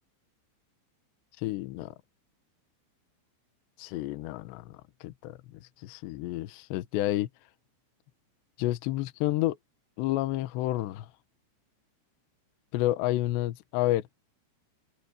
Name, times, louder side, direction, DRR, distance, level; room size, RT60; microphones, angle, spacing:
voice 1, 1.4-1.9 3.8-4.6 5.0-5.4 5.8-7.3 8.6-9.6 10.0-11.1 12.7-14.0, left 16 dB, 75° left, 2.9 m, -29 dB
omnidirectional pair, 6.0 m